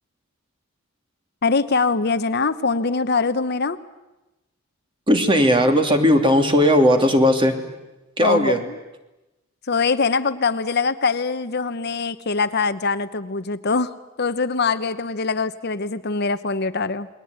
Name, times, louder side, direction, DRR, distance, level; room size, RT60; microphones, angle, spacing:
voice 1, 1.4-3.8 8.2-8.8 9.7-17.1, left 4 dB, 55° left, 12 dB, 0.9 m, -23 dB
voice 2, 5.1-7.5 8.2-8.6, equal, 25° right, 6 dB, 2.7 m, -17 dB
29.0 x 21.5 x 9.5 m, 1.0 s
head